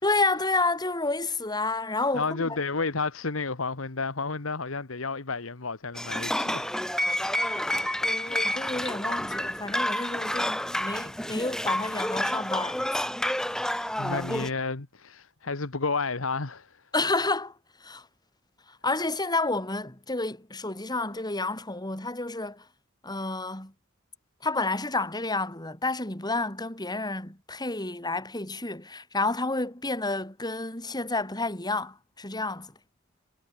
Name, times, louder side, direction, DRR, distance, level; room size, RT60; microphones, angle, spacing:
voice 1, 0.0-2.6 8.0-13.0 16.9-17.5 17.8-18.1 18.7-22.7 23.0-23.7 24.4-32.7, left 2 dB, 20° left, 4.9 m, -30 dB
voice 2, 2.1-6.7 7.0-7.2 14.0-16.7, left 4 dB, 80° left, 1.5 m, -31 dB
sound 1, 6.0-14.5, left 1 dB, 5° left, 1.0 m, -29 dB
head